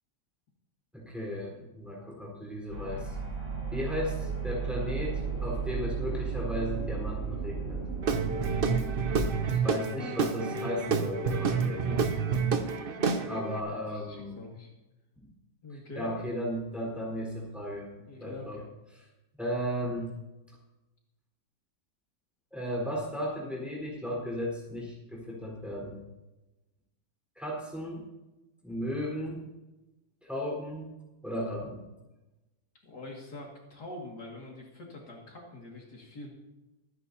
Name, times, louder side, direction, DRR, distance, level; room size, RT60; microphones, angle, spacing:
voice 1, 0.9-3.1 3.7-7.8 9.5-12.0 13.3-14.4 15.2-15.3 16.0-17.9 18.2-18.6 18.9-19.0 19.4-20.1 22.5-26.0 27.4-28.0 28.6-29.5 30.2-30.9 31.2-31.9, equal, ahead, -3 dB, 4.2 m, -35 dB
sound 1, 2.7-9.2, right 6 dB, 70° right, 2.8 m, -34 dB
Guitar / Drum, 8.0-13.6, right 5 dB, 50° right, 0.7 m, -29 dB
voice 2, 11.3-11.8 13.9-14.7 15.6-16.1 18.0-18.7 32.8-36.3, left 2 dB, 70° left, -1 dB, 2.8 m, -44 dB
24.0 x 10.0 x 2.8 m, 1.0 s
omnidirectional pair, 1.9 m